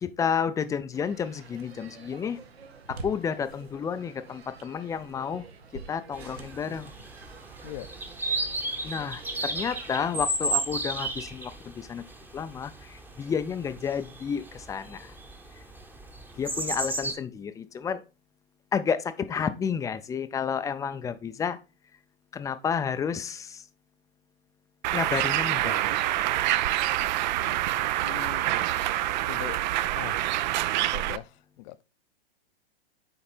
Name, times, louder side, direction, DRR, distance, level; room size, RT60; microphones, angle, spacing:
voice 1, 0.0-2.4 3.0-5.4 5.9-6.9 8.3-8.5 8.8-12.0 12.3-15.1 16.3-18.0 18.7-21.6 22.3-23.6 24.9-26.0, left 7 dB, 10° left, 0.4 m, -31 dB
sound 1, 0.9-10.1, right 4 dB, 85° right, 1.4 m, -47 dB
sound 2, 6.1-17.1, right 2 dB, 5° right, 0.9 m, -34 dB
Bird, 24.8-31.2, right 15 dB, 50° right, 0.5 m, -26 dB
voice 2, 28.0-28.5 29.3-29.6 30.0-30.4 30.8-31.8, left 15 dB, 45° left, 0.7 m, -41 dB
8.8 x 3.9 x 4.3 m
hypercardioid pair, 120°, 30 cm